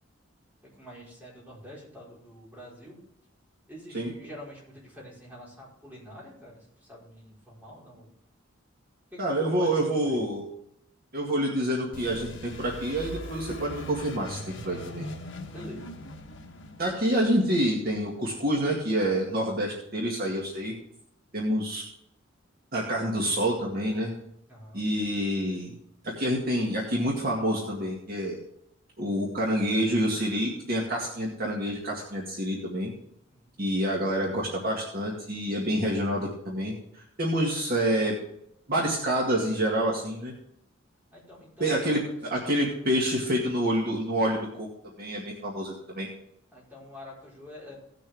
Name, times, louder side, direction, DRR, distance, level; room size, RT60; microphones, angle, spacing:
voice 1, 0.7-3.0 3.7-8.1 9.1-10.2 15.5-15.9 24.5-24.8 33.3-33.5 41.1-41.8 42.5-42.6 46.5-47.8, left 1 dB, 10° right, -6 dB, 4.4 m, -46 dB
voice 2, 9.2-10.4 11.1-15.1 16.8-20.8 21.3-21.8 22.7-24.1 24.7-25.7 26.0-28.4 29.0-32.9 33.6-38.2 38.7-40.3 41.6-44.7 45.0-46.1, equal, 50° right, -1 dB, 2.0 m, -27 dB
sound 1, 11.9-18.5, left 1 dB, 70° left, 1.3 m, -42 dB
17.5 x 6.6 x 3.5 m, 0.74 s
head